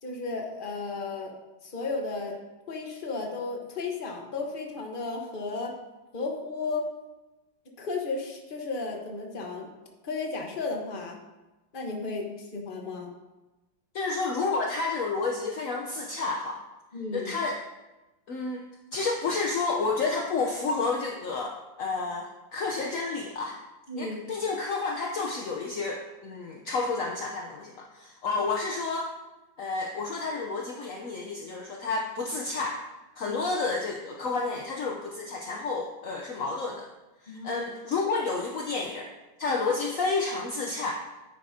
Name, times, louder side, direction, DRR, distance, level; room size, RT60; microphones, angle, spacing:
voice 1, 0.0-1.3 1.6-2.4 2.7-5.7 6.1-6.8 7.8-9.7 10.0-11.2 11.7-13.1 16.9-17.3 23.9-24.2 33.2-33.4 37.3-37.6, left 3 dB, 30° left, 1 dB, 1.0 m, -34 dB
voice 2, 13.9-16.6 17.1-17.6 18.3-18.6 18.9-23.6 24.0-29.1 29.6-32.8 33.2-36.9 37.2-39.1 39.4-40.9, left 3 dB, 60° left, 1 dB, 0.8 m, -30 dB
10.0 x 9.3 x 2.8 m, 1.1 s
omnidirectional pair, 2.3 m